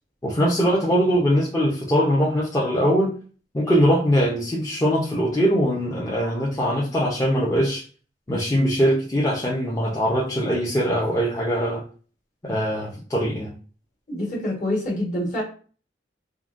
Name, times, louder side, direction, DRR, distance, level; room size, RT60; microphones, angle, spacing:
voice 1, 0.2-3.1 3.5-7.8 8.3-11.8 12.4-13.5, equal, 20° left, -5 dB, 0.5 m, -21 dB
voice 2, 14.1-15.4, left 1 dB, 45° left, -2 dB, 1.1 m, -26 dB
3.6 x 2.1 x 2.4 m, 0.41 s
head